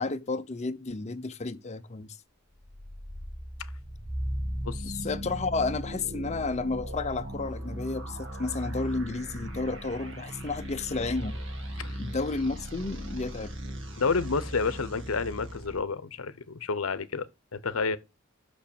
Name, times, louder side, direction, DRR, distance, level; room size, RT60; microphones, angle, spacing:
voice 1, 0.0-2.2 5.0-11.4 12.0-13.5, left 3 dB, 35° left, 0.7 m, -32 dB
sound 1, 2.5-15.8, equal, 60° right, 1.8 m, -37 dB
voice 2, 4.6-5.1 11.8-11.9 14.0-18.0, left 4 dB, 75° left, 0.8 m, -30 dB
6.2 x 5.2 x 6.9 m
head